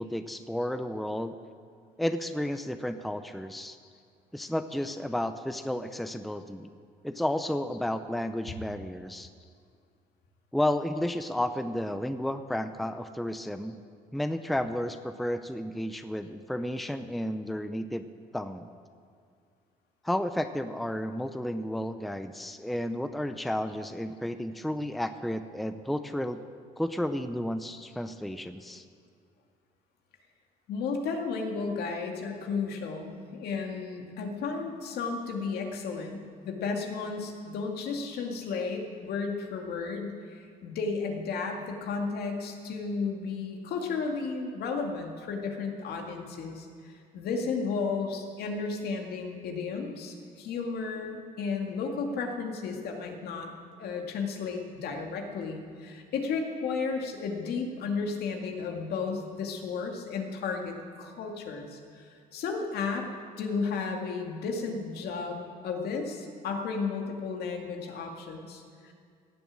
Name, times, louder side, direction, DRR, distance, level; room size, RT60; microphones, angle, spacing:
voice 1, 0.0-1.4 2.0-3.8 4.3-6.7 7.0-9.3 10.5-13.8 14.1-18.0 18.3-18.7 20.0-26.4 26.8-28.8, left 1 dB, ahead, 9 dB, 0.6 m, -32 dB
voice 2, 30.7-53.5 53.8-63.1 63.4-68.9, left 4 dB, 70° left, 2 dB, 2.2 m, -33 dB
17.0 x 7.0 x 8.8 m, 2.3 s
cardioid pair, 110°, 17 cm